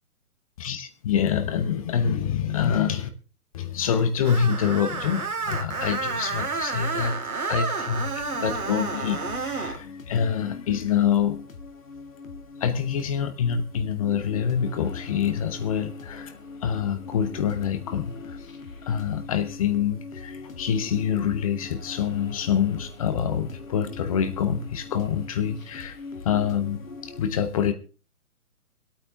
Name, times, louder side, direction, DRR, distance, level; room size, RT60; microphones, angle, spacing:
voice 1, 0.6-3.1 3.5-7.1 7.5-8.1 8.4-11.4 12.6-16.3 16.6-18.5 18.9-26.0 26.2-27.7, left 8 dB, 25° left, 9 dB, 1.0 m, -26 dB
Screech, 4.2-9.8, right 4 dB, 70° right, 2.6 m, -30 dB
sound 1, 8.2-27.2, left 4 dB, 60° left, 2.2 m, -42 dB
24.5 x 8.8 x 3.4 m, 0.35 s
figure-of-eight pair, 130°, 44 cm